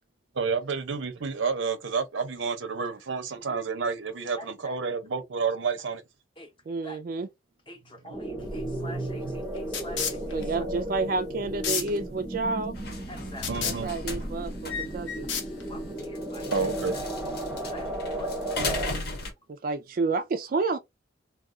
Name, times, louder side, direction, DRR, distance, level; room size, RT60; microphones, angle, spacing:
voice 1, 0.3-6.0 7.9-9.4 10.0-10.1 13.4-13.9 15.8-16.0 16.5-17.0, right 5 dB, 85° right, 0.7 m, -30 dB
voice 2, 4.4-4.8 6.4-6.5 6.8-7.0 7.7-10.4 13.1-13.5 15.7-16.5 17.7-17.9 18.2-18.3, equal, 25° left, 0.7 m, -45 dB
voice 3, 6.7-7.3 10.3-12.7 13.6-15.3 19.5-20.8, right 3 dB, 50° right, 0.3 m, -30 dB
sound 1, 8.1-18.9, right 1 dB, 10° right, 0.7 m, -35 dB
sound 2, 8.4-16.0, left 5 dB, 85° left, 0.8 m, -35 dB
sound 3, 12.7-19.3, left 3 dB, 55° left, 0.9 m, -36 dB
2.3 x 2.3 x 3.7 m
head